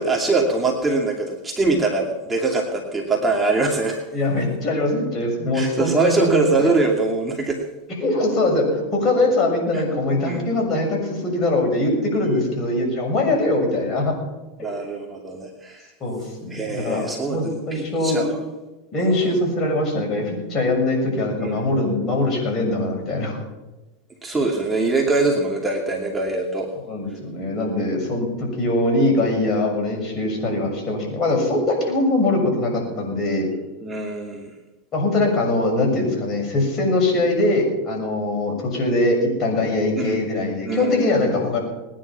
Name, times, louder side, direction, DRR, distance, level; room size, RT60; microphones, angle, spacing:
voice 1, 0.0-4.0 5.5-7.6 9.7-9.8 10.2-10.4 12.2-12.5 14.6-15.9 16.5-18.4 21.4-21.7 24.2-26.7 33.8-34.5 40.0-40.1 40.7-41.4, right 3 dB, 15° right, 0 dB, 2.6 m, -23 dB
voice 2, 4.1-6.8 8.0-14.1 16.0-18.2 18.9-23.4 26.9-33.5 34.9-41.6, left 2 dB, 35° left, 1 dB, 6.8 m, -22 dB
20.5 x 10.5 x 6.0 m, 1.1 s
hypercardioid pair, 105°, 0 cm